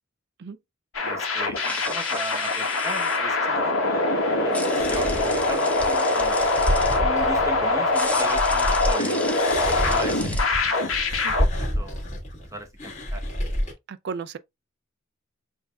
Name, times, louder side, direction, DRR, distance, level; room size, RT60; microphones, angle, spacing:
sound 1, 0.9-11.5, left 2 dB, 80° left, 1.1 m, -23 dB
voice 1, 1.0-6.4 7.0-9.4 9.8-11.1 11.3-11.4 11.8-12.0 12.5-13.2, right 1 dB, 15° right, 0.9 m, -37 dB
sound 2, 1.5-3.2 4.5-7.0 7.9-10.5, left 2 dB, 5° left, 0.5 m, -35 dB
sound 3, 4.5-8.9 9.2-13.7, equal, 35° left, 1.7 m, -29 dB
voice 2, 13.9-14.4, right 5 dB, 55° right, 0.4 m, -34 dB
7.1 x 2.6 x 2.3 m
head